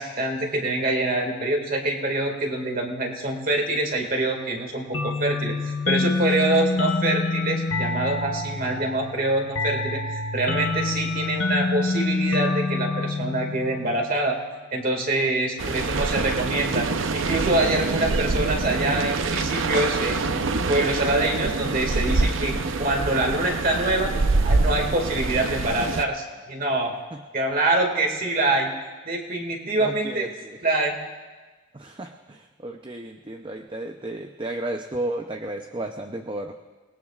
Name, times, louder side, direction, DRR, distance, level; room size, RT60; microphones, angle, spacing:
voice 1, 0.0-14.4 14.7-16.9 17.1-20.4 20.7-24.1 24.4-26.9 27.3-28.7 29.1-30.3 30.6-31.0, right 2 dB, 45° right, 2 dB, 2.1 m, -25 dB
sound 1, 4.9-14.3, left 3 dB, 70° left, 0.8 m, -27 dB
voice 2, 6.0-6.4 26.7-27.2 29.8-30.6 31.7-36.5, right 1 dB, 25° right, 5 dB, 0.6 m, -34 dB
sound 2, 15.6-26.0, right 3 dB, 70° right, 0.7 m, -25 dB
28.5 x 19.0 x 2.4 m, 1.3 s
head